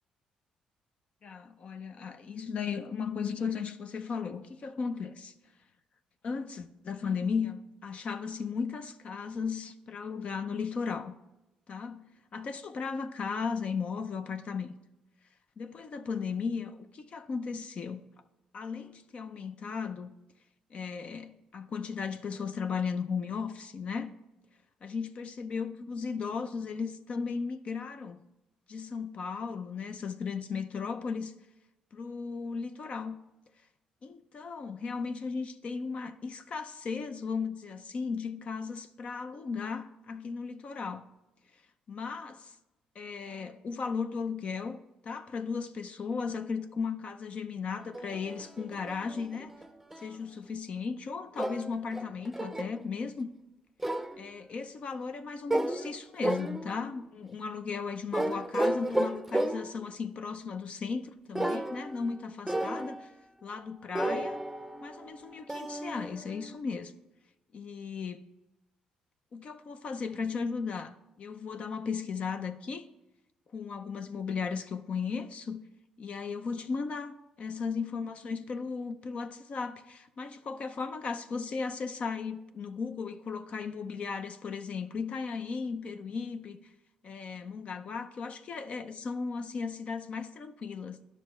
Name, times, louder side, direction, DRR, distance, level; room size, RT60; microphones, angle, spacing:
voice 1, 1.2-5.3 6.2-11.1 11.7-14.7 15.6-18.0 18.5-20.1 20.7-24.1 24.8-28.2 28.7-31.3 31.9-33.2 34.0-41.1 41.9-42.6 43.0-49.5 50.0-53.3 54.2-63.1 63.4-64.4 64.8-66.9 67.5-68.2 69.3-72.9 73.5-75.6 76.0-86.6 87.0-91.0, left 5 dB, 50° left, 0.6 m, -36 dB
sound 1, 47.9-50.2 51.4-52.8 53.8-54.3 55.5-56.0 56.2-56.9 58.1-59.8 61.3-62.1 62.5-63.1 63.9-66.6, right 1 dB, 5° right, 0.7 m, -33 dB
10.0 x 6.1 x 4.4 m
cardioid pair, 75°, 3 cm